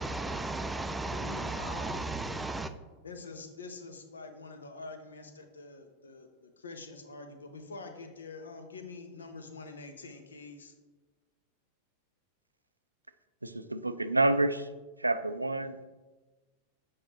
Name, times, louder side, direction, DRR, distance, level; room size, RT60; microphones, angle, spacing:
voice 1, 0.0-2.7, right 2 dB, 10° right, 9 dB, 0.4 m, -35 dB
voice 2, 1.1-2.1 3.0-10.7, left 3 dB, 70° left, 6 dB, 0.7 m, -46 dB
voice 3, 13.4-14.7 15.0-15.8, right 2 dB, 85° right, 11 dB, 0.3 m, -28 dB
7.8 x 4.8 x 2.9 m, 1.2 s
figure-of-eight pair, 90°, 0 cm